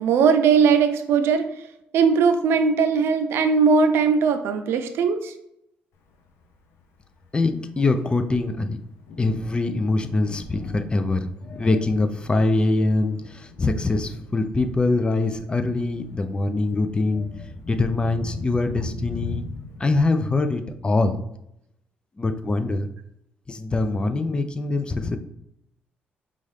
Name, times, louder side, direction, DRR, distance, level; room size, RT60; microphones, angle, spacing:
voice 1, 0.0-1.5 1.9-5.3, right 5 dB, 75° right, 8 dB, 0.5 m, -19 dB
Thunder, 6.1-19.8, left 3 dB, 85° left, 0.6 m, -40 dB
voice 2, 7.3-8.8 9.2-19.5 19.8-21.2 22.2-22.9 23.5-25.2, left 2 dB, 25° left, 9 dB, 0.5 m, -23 dB
5.3 x 2.4 x 3.3 m, 0.78 s
cardioid pair, 90°, 4 cm